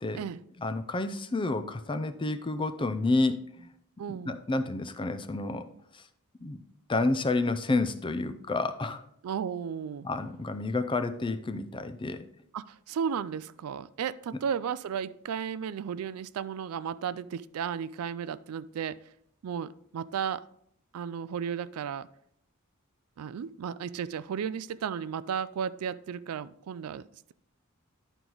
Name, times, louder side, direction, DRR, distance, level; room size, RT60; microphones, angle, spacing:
voice 1, 0.6-3.7 4.1-5.7 5.9-6.0 6.4-6.6 6.9-9.0 10.0-12.2, left 2 dB, 20° left, 11 dB, 0.5 m, -30 dB
voice 2, 4.0-4.4 9.2-10.0 12.5-19.0 19.4-20.4 20.9-22.1 23.2-27.0, right 7 dB, 70° right, 16 dB, 0.3 m, -34 dB
11.0 x 4.6 x 3.9 m, 0.70 s
head